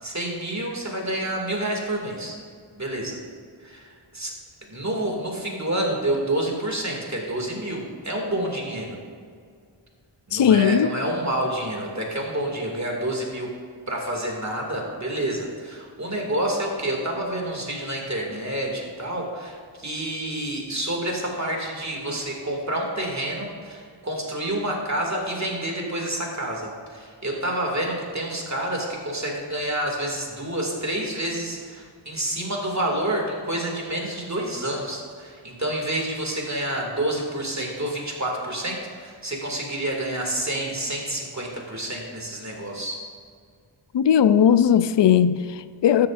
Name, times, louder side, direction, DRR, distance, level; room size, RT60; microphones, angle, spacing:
voice 1, 0.0-2.3 2.8-3.2 3.6-4.3 4.7-9.0 10.3-13.5 13.9-43.0, right 1 dB, 35° right, 2.4 m, -28 dB
voice 2, 10.3-10.9 43.9-46.1, left 8 dB, 60° left, 0.5 m, -18 dB
13.5 x 10.5 x 2.6 m
wide cardioid pair, 55°, 49 cm